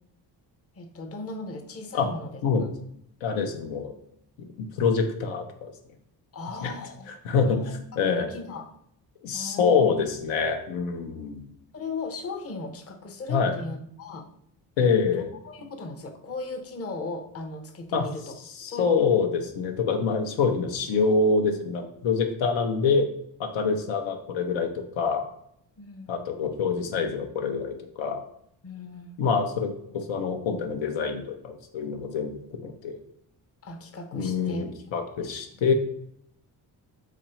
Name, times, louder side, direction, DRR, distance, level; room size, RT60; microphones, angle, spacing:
voice 1, 0.8-2.4 6.3-7.1 7.3-7.8 8.2-8.7 9.3-10.0 11.7-14.3 15.1-18.4 18.7-19.0 25.8-26.3 28.6-29.2 33.6-34.7 35.2-35.3, left 3 dB, 30° left, 5 dB, 0.7 m, -37 dB
voice 2, 3.2-3.9 4.4-5.7 6.6-6.7 7.1-7.6 8.0-8.3 9.2-11.5 13.3-13.5 14.8-15.3 17.9-18.1 18.6-23.1 23.4-25.3 26.1-28.2 29.2-33.0 34.1-35.7, left 5 dB, 80° left, 5 dB, 0.7 m, -26 dB
3.0 x 2.5 x 4.3 m, 0.71 s
supercardioid pair, 65°, 46 cm